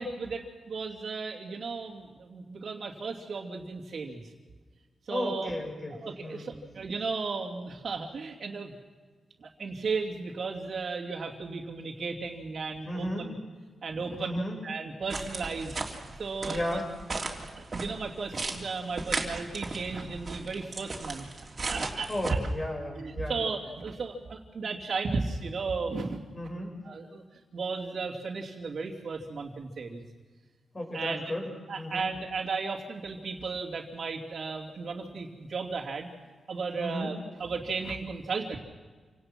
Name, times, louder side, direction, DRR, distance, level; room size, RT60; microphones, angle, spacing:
voice 1, 0.0-4.2 5.1-5.5 6.0-8.7 9.4-13.3 13.8-15.8 16.2-16.8 17.3-21.3 21.7-22.4 23.0-26.2 26.8-27.2 27.5-30.0 30.9-31.2 31.7-36.1 36.5-38.6, right 4 dB, 55° right, -7 dB, 2.7 m, -35 dB
voice 2, 5.1-6.5 12.8-13.3 14.2-14.6 16.5-16.9 22.1-23.4 26.3-26.7 30.7-31.5 31.8-32.1 36.8-37.1, left 1 dB, 25° left, 1 dB, 6.8 m, -34 dB
sound 1, 15.1-22.3, right 3 dB, 35° right, 3.3 m, -36 dB
27.5 x 18.5 x 6.2 m, 1.5 s
wide cardioid pair, 110°, 0 cm